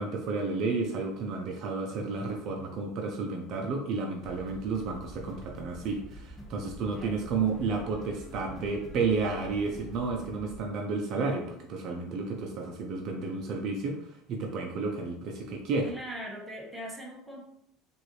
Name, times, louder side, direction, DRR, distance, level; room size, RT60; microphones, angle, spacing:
voice 1, 0.0-14.0 14.3-15.9, right 4 dB, 55° right, 1 dB, 0.6 m, -31 dB
sound 1, 4.2-10.6, equal, 15° left, 1.1 m, -46 dB
voice 2, 15.8-17.4, right 1 dB, 5° right, -2 dB, 1.2 m, -40 dB
4.7 x 2.7 x 3.1 m, 0.75 s
supercardioid pair, 110°, 0 cm